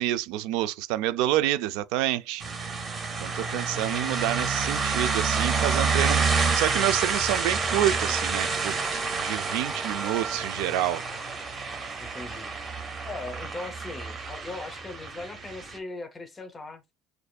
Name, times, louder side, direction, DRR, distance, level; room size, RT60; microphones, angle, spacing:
voice 1, 0.0-2.8 3.2-11.0, right 14 dB, 80° right, 0.4 m, -28 dB
sound 1, 2.4-15.8, right 4 dB, 20° right, 0.8 m, -29 dB
sound 2, 3.3-11.5, right 7 dB, 55° right, 1.1 m, -39 dB
voice 2, 12.0-12.5 13.0-16.8, left 2 dB, 15° left, 0.7 m, -39 dB
6.6 x 2.6 x 2.3 m
cardioid pair, 170°, 0 cm